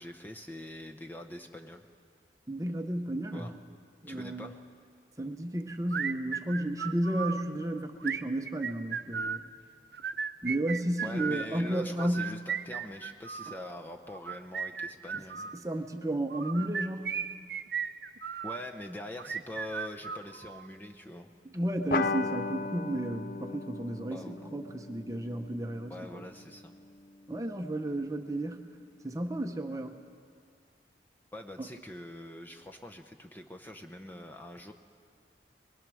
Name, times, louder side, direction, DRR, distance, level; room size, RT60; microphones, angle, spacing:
voice 1, 0.0-1.9 3.3-3.6 4.1-4.6 11.0-15.5 18.4-21.3 24.1-24.4 25.9-26.8 31.3-34.7, left 1 dB, 10° left, 3 dB, 0.8 m, -43 dB
voice 2, 2.5-3.5 4.0-4.5 5.2-9.4 10.4-12.3 15.5-17.1 21.5-25.9 27.3-28.6 29.0-29.9 31.6-31.7, right 1 dB, 20° right, 5 dB, 0.8 m, -33 dB
sound 1, 5.9-7.4 8.0-9.4 9.9-11.5 12.0-13.6 14.1-15.6 16.3-18.6 19.2-20.7, right 6 dB, 70° right, 0.6 m, -35 dB
sound 2, 21.9-26.8, left 4 dB, 50° left, 0.5 m, -36 dB
21.5 x 21.0 x 6.3 m, 2.2 s
head